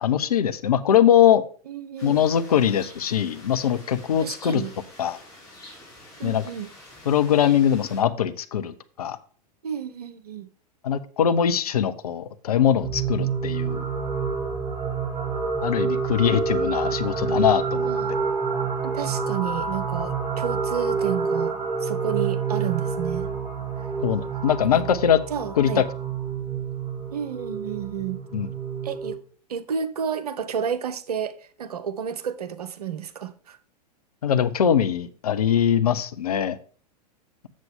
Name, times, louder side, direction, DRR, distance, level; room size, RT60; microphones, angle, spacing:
voice 1, 0.0-1.4 2.0-4.6 5.0-5.2 6.2-6.4 7.1-9.2 10.8-13.8 15.6-17.9 24.0-25.2 25.6-25.8 28.3-28.5 34.2-36.6, left 9 dB, 65° left, 0.7 m, -22 dB
voice 2, 1.7-2.3 4.2-4.7 6.2-6.7 9.6-10.5 17.8-18.1 18.8-23.3 24.7-24.8 25.3-25.8 27.1-28.2 28.8-29.2 29.5-33.6, right 8 dB, 65° right, 0.8 m, -31 dB
sound 1, 2.0-8.0, left 2 dB, 15° left, 4.0 m, -47 dB
sound 2, 12.8-29.2, right 5 dB, 25° right, 2.1 m, -28 dB
7.5 x 7.4 x 3.6 m
figure-of-eight pair, 95°, 21 cm